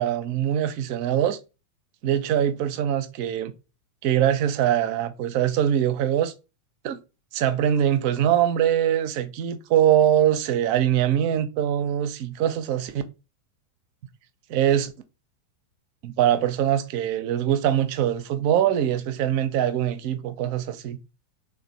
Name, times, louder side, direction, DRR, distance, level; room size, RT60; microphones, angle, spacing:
voice 1, 0.0-1.4 2.0-3.5 4.0-6.3 6.8-7.0 7.3-13.0 14.5-14.9 16.0-21.0, right 10 dB, 45° right, 0.5 m, -23 dB
3.3 x 2.1 x 4.0 m
figure-of-eight pair, 90°, 0 cm